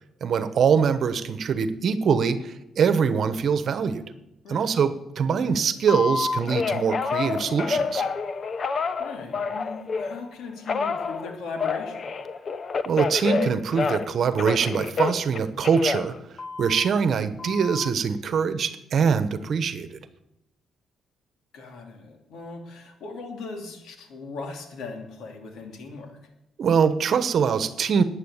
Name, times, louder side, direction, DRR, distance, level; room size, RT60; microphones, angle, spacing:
voice 1, 0.2-4.0 4.5-8.0 12.9-16.1 16.6-20.0 26.6-28.0, right 6 dB, 60° right, 11 dB, 1.1 m, -23 dB
Telephone, 5.9-10.2 10.7-14.1 14.4-16.9 17.4-17.9, left 4 dB, 45° left, 0.9 m, -28 dB
voice 2, 9.0-12.1 21.5-26.2, left 3 dB, 80° left, 3 dB, 2.9 m, -38 dB
13.0 x 9.7 x 8.3 m, 0.91 s
cardioid pair, 85°, 0 cm